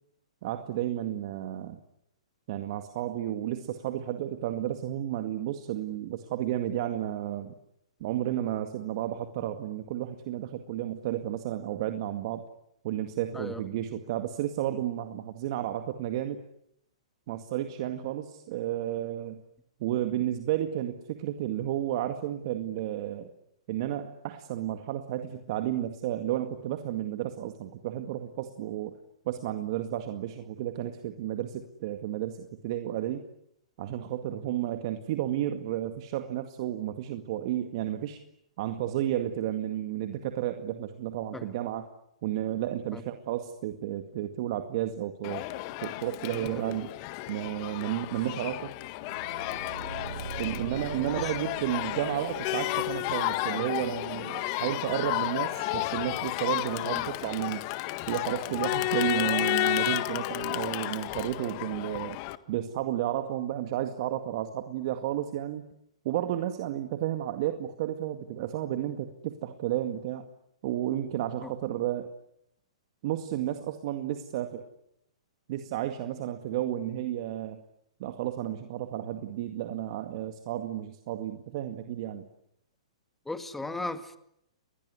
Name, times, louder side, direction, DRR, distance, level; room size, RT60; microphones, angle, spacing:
voice 1, 0.4-1.8 2.5-7.5 8.0-12.4 12.8-16.4 17.3-19.4 19.8-23.3 23.7-28.9 29.3-33.3 33.8-38.2 38.6-41.9 42.2-45.4 45.8-46.9 47.3-48.7 50.4-57.6 58.1-62.2 62.5-65.6 66.0-70.3 70.6-72.1 73.0-74.7 75.5-77.6 78.0-82.3, right 12 dB, 50° right, 7 dB, 2.1 m, -32 dB
Crowd, 45.2-62.4, left 18 dB, 40° left, 1.5 m, -32 dB
voice 2, 46.3-46.8 50.0-50.1 51.2-51.3 56.9-57.1 71.4-71.5 83.3-84.2, left 2 dB, 5° left, 9 dB, 2.1 m, -37 dB
sound 1, 48.9-53.9, right 6 dB, 75° right, 1.7 m, -43 dB
29.0 x 21.0 x 9.7 m, 0.78 s
hypercardioid pair, 135°, 3 cm